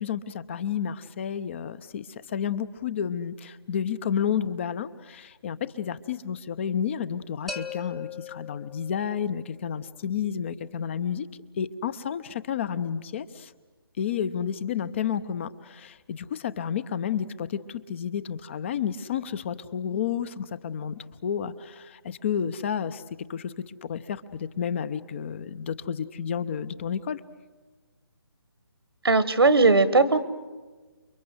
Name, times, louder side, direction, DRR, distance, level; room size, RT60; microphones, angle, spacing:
voice 1, 0.0-11.3 11.6-13.5 14.0-23.0 23.3-27.2, left 8 dB, 30° left, 15 dB, 0.8 m, -31 dB
sound 1, 7.5-9.3, left 5 dB, ahead, 0.9 m, -38 dB
voice 2, 29.0-30.2, right 3 dB, 75° right, 14 dB, 1.8 m, -18 dB
29.5 x 22.5 x 8.1 m, 1.3 s
figure-of-eight pair, 155°, 13 cm